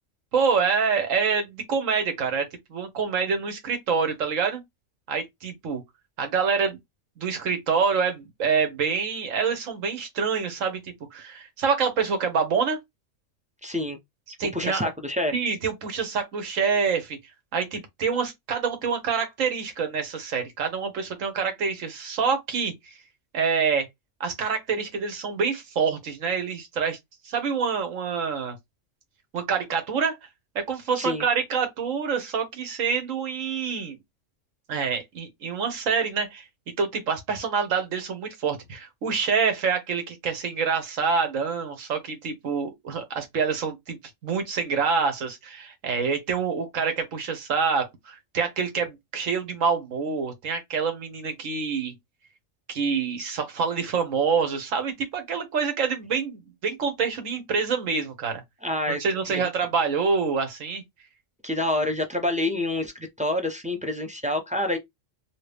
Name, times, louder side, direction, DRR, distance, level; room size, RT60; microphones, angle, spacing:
voice 1, 0.3-4.6 5.1-5.8 6.2-6.8 7.2-12.8 14.4-14.9 15.3-17.2 17.5-22.9 23.3-23.9 24.2-27.0 27.2-28.6 29.3-30.2 30.5-34.0 34.7-36.4 36.8-51.9 52.7-58.4 58.9-60.8, right 5 dB, 85° right, 1.4 m, -26 dB
voice 2, 13.6-14.0 14.5-15.3 31.0-31.2 58.6-59.0 59.3-59.4 61.4-62.9 63.2-64.8, left 1 dB, 10° right, 0.4 m, -27 dB
2.9 x 2.7 x 3.3 m
omnidirectional pair, 1.3 m